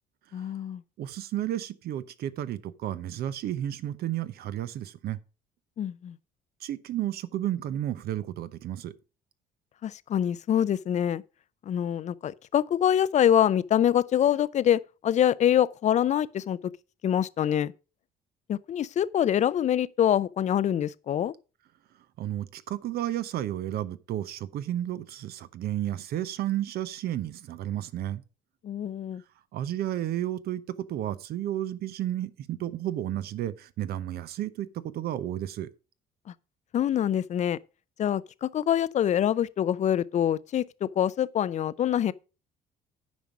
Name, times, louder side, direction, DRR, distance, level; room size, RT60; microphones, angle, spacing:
voice 1, 0.3-0.8 5.8-6.2 9.8-11.2 11.7-16.6 17.0-17.7 18.5-21.3 28.6-29.2 36.7-37.6 38.0-42.1, left 10 dB, 45° left, 0.5 m, -25 dB
voice 2, 1.0-5.2 6.6-8.9 22.2-28.2 29.5-34.7 34.9-35.7, right 12 dB, 65° right, 0.8 m, -32 dB
9.4 x 5.4 x 5.9 m
cardioid pair, 110°, 17 cm